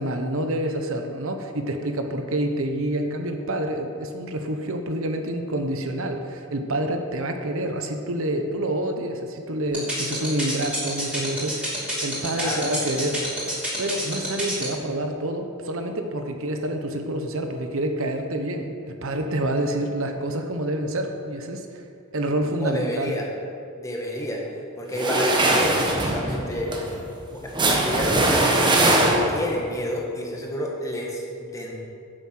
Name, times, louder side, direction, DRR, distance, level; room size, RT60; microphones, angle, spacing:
voice 1, 0.0-13.3 13.8-21.8 22.1-23.2, right 1 dB, 65° right, 5 dB, 1.0 m, -28 dB
sound 1, 9.7-14.6, right 1 dB, 5° right, 3.4 m, -27 dB
voice 2, 12.3-12.7 22.4-23.3 23.8-24.4 24.8-26.7 27.3-28.6 29.3-31.7, equal, 15° left, -1 dB, 1.7 m, -30 dB
sound 2, 24.9-29.6, right 1 dB, 20° right, 1.2 m, -21 dB
10.5 x 7.3 x 7.6 m, 2.5 s
head